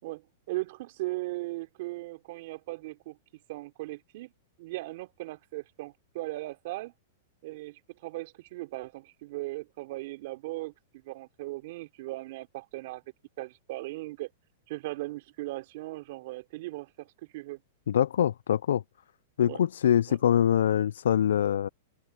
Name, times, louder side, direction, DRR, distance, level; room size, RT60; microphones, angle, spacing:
voice 1, 0.0-3.2 3.5-4.3 4.6-6.9 7.4-13.0 13.4-14.3 14.7-17.6 19.5-19.6 20.1-20.2, right 19 dB, 60° right, 3.0 m, -38 dB
voice 2, 17.9-18.8 19.4-21.7, left 9 dB, 80° left, 0.3 m, -24 dB
hypercardioid pair, 125°, 0 cm